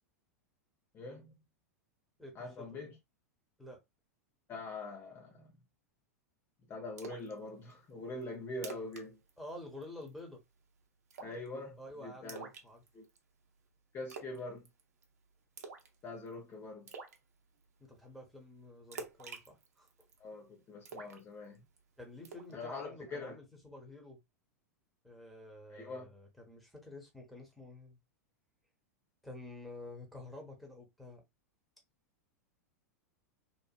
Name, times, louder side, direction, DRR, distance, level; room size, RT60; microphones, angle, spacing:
voice 1, 0.9-1.3 2.4-2.9 4.5-5.5 6.7-9.2 11.2-12.5 12.9-13.1 13.9-14.6 16.0-16.9 20.2-21.6 22.5-23.4 25.7-26.1, left 2 dB, 30° left, 0.7 m, -43 dB
voice 2, 2.2-2.8 3.6-3.8 9.4-10.4 11.8-12.8 17.9-19.9 22.0-24.2 25.0-28.0 29.2-31.2, left 1 dB, ahead, 1.2 m, -49 dB
Splash splatter, 7.0-7.3 7.7-7.8 8.2-8.3 8.5-9.0 9.3-9.5 9.8-10.2 11.1-11.5 12.3-13.2 14.1-14.4 14.6-15.0 15.6-15.9 16.3-16.4 16.9-17.2 18.9-20.2 20.8-21.8 22.2-22.5, right 5 dB, 65° right, 0.7 m, -47 dB
3.0 x 2.4 x 2.4 m
figure-of-eight pair, 95°, 9 cm